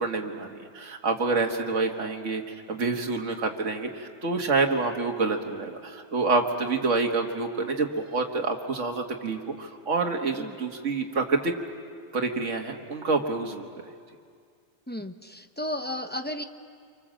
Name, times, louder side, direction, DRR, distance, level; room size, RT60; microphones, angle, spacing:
voice 1, 0.0-11.5 12.1-13.7, right 3 dB, 75° right, 2 dB, 1.9 m, -27 dB
voice 2, 14.9-16.4, left 1 dB, 10° left, 6 dB, 0.7 m, -33 dB
27.5 x 24.5 x 7.6 m, 2.2 s
omnidirectional pair, 1.3 m